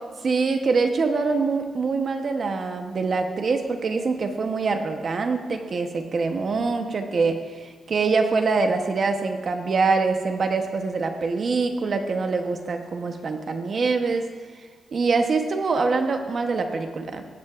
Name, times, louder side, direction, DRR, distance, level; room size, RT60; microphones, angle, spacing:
voice 1, 0.2-14.3 14.9-17.2, right 4 dB, 55° right, 6 dB, 0.9 m, -24 dB
15.5 x 9.5 x 2.5 m, 1.5 s
cardioid pair, 105°, 0 cm